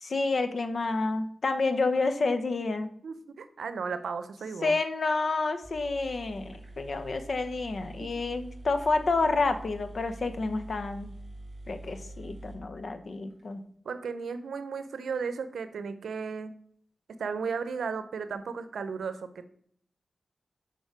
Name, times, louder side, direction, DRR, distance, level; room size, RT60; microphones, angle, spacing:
voice 1, 0.0-2.9 4.6-11.1 11.7-13.6, left 3 dB, 65° left, 9 dB, 0.8 m, -29 dB
voice 2, 3.0-4.8 8.0-8.3 13.8-16.5 17.1-19.5, right 5 dB, 90° right, 12 dB, 0.6 m, -35 dB
sound 1, 5.3-5.4 5.6-13.4, right 1 dB, 20° right, 3.4 m, -45 dB
6.5 x 5.3 x 4.8 m, 0.63 s
cardioid pair, 50°, 0 cm